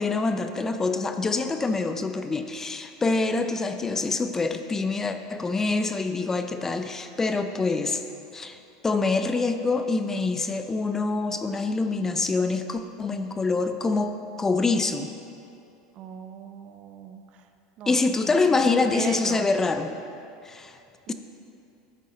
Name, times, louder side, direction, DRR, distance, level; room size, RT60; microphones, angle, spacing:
voice 1, 0.0-8.0 8.3-8.6 8.8-15.1 17.9-19.9 20.4-20.8 21.1-21.2, left 3 dB, 15° left, 8 dB, 0.4 m, -25 dB
voice 2, 13.0-13.4 15.9-17.5 17.8-18.0 18.2-19.5 21.1-21.2, right 8 dB, 50° right, 7 dB, 0.6 m, -39 dB
10.5 x 6.5 x 3.9 m, 2.7 s
supercardioid pair, 115°, 3 cm